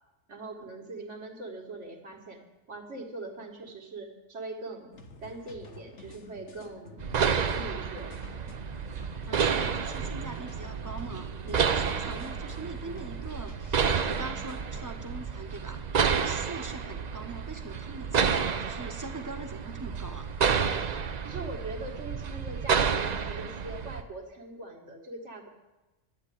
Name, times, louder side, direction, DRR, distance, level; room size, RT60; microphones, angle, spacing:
voice 1, 0.3-2.4 2.7-4.9 5.2-8.2 21.2-25.5, right 2 dB, 65° right, 2 dB, 2.1 m, -41 dB
sound 1, 4.9-15.3, left 3 dB, 65° left, 1.6 m, -49 dB
sound 2, 7.0-24.0, right 6 dB, 45° right, 0.6 m, -30 dB
voice 2, 9.3-20.3, right 2 dB, 15° right, 5 dB, 1.1 m, -42 dB
11.0 x 8.9 x 9.9 m, 1.1 s
omnidirectional pair, 1.3 m